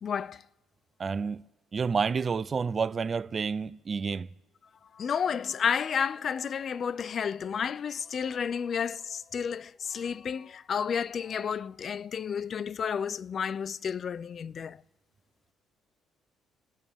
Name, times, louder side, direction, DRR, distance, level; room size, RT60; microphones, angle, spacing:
voice 1, 0.0-0.4 4.9-14.8, left 7 dB, 45° left, 0.4 m, -31 dB
voice 2, 1.0-1.4 1.7-4.3, right 5 dB, 35° right, 0.4 m, -29 dB
26.0 x 9.0 x 3.6 m
cardioid pair, 95°, 0 cm